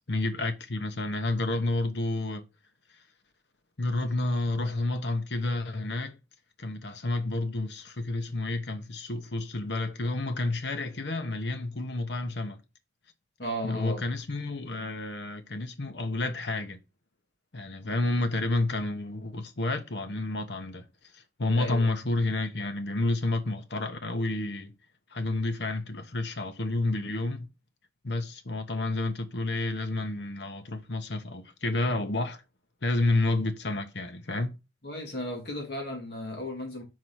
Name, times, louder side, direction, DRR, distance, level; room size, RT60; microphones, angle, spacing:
voice 1, 0.1-2.4 3.8-6.2 6.6-12.6 13.6-16.8 17.5-20.8 21.1-24.7 25.1-27.5 28.0-32.4 32.8-34.6, left 2 dB, 85° left, 1.1 m, -30 dB
voice 2, 13.4-14.0 21.5-21.9 34.8-36.8, left 1 dB, 70° left, 2.4 m, -34 dB
4.7 x 4.7 x 5.8 m
head